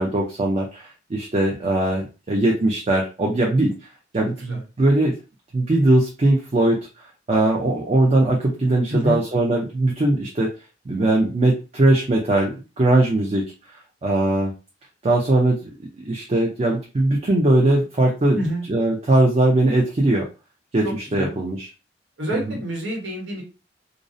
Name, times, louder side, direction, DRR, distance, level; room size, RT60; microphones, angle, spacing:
voice 1, 0.0-3.7 4.1-5.2 5.5-6.8 7.3-10.5 10.9-13.4 13.7-14.5 15.0-18.4 18.7-20.2 20.7-21.7 22.3-22.6, right 2 dB, 35° right, -1 dB, 0.4 m, -20 dB
voice 2, 8.9-9.2 18.3-18.6 20.8-21.3 22.2-23.4, equal, 85° right, -1 dB, 1.2 m, -27 dB
2.5 x 2.0 x 2.5 m, 0.31 s
head